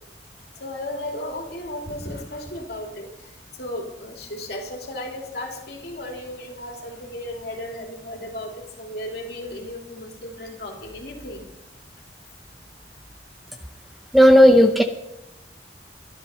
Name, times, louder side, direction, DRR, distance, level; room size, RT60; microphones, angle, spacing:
voice 1, 0.6-3.3 3.6-11.4, left 1 dB, 55° left, 2 dB, 2.8 m, -35 dB
voice 2, 14.1-14.8, equal, ahead, 6 dB, 0.6 m, -12 dB
14.0 x 12.5 x 5.4 m, 0.90 s
head